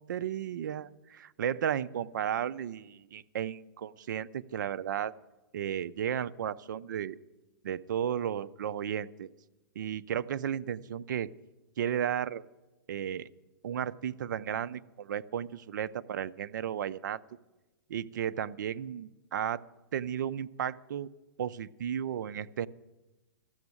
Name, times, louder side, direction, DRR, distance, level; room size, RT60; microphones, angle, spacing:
voice 1, 0.0-5.1 5.5-7.2 7.6-9.3 9.8-11.3 11.8-12.4 12.9-13.3 13.6-17.2 17.9-19.6 19.9-21.1 21.4-22.7, right 9 dB, 60° right, 15 dB, 0.4 m, -34 dB
13.0 x 7.0 x 9.5 m, 1.1 s
hypercardioid pair, 165°, 11 cm